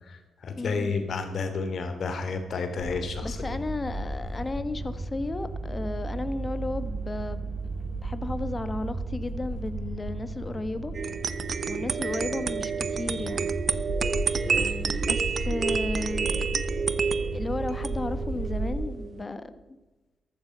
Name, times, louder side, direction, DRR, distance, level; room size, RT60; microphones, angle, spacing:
voice 1, 0.1-3.6 14.4-14.9, left 4 dB, 65° left, 7 dB, 2.8 m, -31 dB
voice 2, 0.6-0.9 3.2-10.9 11.7-13.5 15.0-16.5 17.3-19.5, left 2 dB, 30° left, 11 dB, 1.5 m, -34 dB
sound 1, 2.8-18.7, right 2 dB, 30° right, 6.1 m, -34 dB
sound 2, 10.9-19.2, right 5 dB, 55° right, 0.9 m, -30 dB
14.5 x 12.5 x 5.7 m, 1.1 s
supercardioid pair, 45°, 0 cm